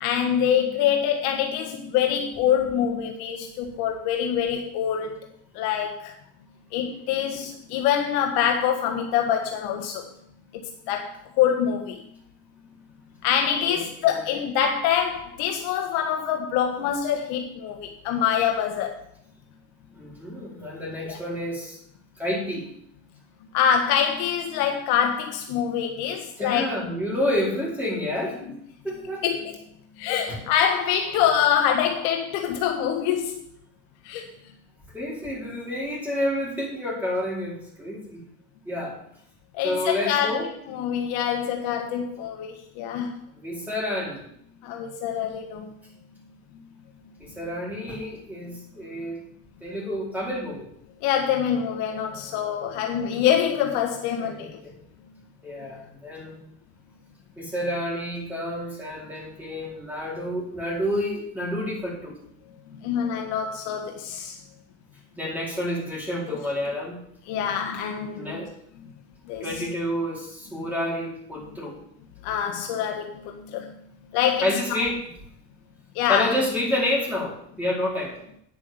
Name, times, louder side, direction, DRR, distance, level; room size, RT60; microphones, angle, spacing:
voice 1, 0.0-5.1 5.5-6.2 6.7-10.1 10.5-12.0 13.2-19.0 21.0-21.2 23.5-26.7 29.2-29.6 30.0-33.4 34.0-34.3 39.5-43.1 44.6-45.7 51.0-54.5 55.6-55.8 62.7-64.4 66.3-66.4 67.3-68.3 69.3-69.5 72.2-73.7 74.1-74.5 75.9-76.3, left 9 dB, 75° left, 1.4 m, -25 dB
voice 2, 13.6-14.2 19.9-21.8 22.1-22.7 26.4-28.4 28.8-29.2 30.3-30.4 34.9-38.2 38.6-39.0 39.6-40.5 43.3-44.2 47.2-49.2 49.6-50.7 54.2-54.7 55.4-56.4 57.4-62.2 65.2-67.0 68.1-68.5 69.4-71.7 74.4-75.0 76.1-78.2, left 1 dB, 5° right, 4.5 m, -29 dB
9.3 x 6.3 x 7.1 m
supercardioid pair, 120°, 38 cm